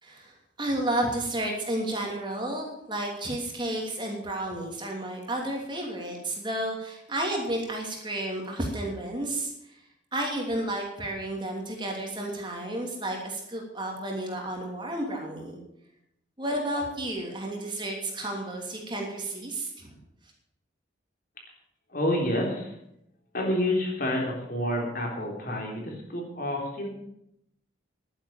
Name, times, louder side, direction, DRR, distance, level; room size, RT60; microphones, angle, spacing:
voice 1, 0.0-9.8 10.1-15.6 16.4-20.0, right 1 dB, 25° right, 1 dB, 2.9 m, -32 dB
voice 2, 21.9-22.7 23.3-26.9, left 1 dB, 50° left, 0 dB, 3.6 m, -28 dB
11.5 x 9.8 x 7.3 m, 0.77 s
head